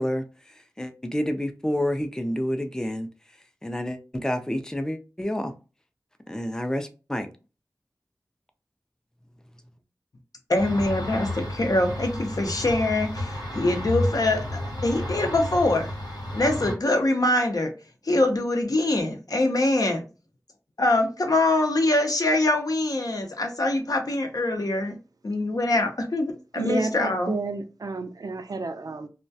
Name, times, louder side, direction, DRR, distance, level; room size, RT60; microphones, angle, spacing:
voice 1, 0.0-3.1 3.6-5.5 6.3-7.3, equal, 10° left, 7 dB, 0.4 m, -29 dB
sound 1, 10.5-16.7, left 1 dB, 85° left, 1.0 m, -31 dB
voice 2, 10.5-15.9 16.3-17.7 18.0-20.0 20.8-24.9 25.2-27.3, left 2 dB, 65° left, 4 dB, 0.6 m, -24 dB
voice 3, 26.6-29.1, right 3 dB, 65° right, 8 dB, 0.4 m, -30 dB
2.3 x 2.1 x 2.6 m, 0.32 s
wide cardioid pair, 45°, 7 cm